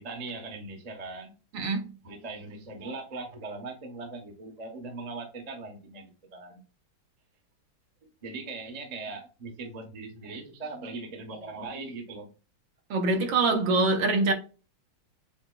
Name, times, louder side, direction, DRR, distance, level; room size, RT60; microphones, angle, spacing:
voice 1, 0.0-1.3 2.0-6.6 8.0-12.3, right 3 dB, 35° right, 0.6 m, -40 dB
voice 2, 1.5-1.9 12.9-14.3, right 3 dB, 65° right, 1.6 m, -24 dB
7.0 x 2.9 x 2.2 m
omnidirectional pair, 2.4 m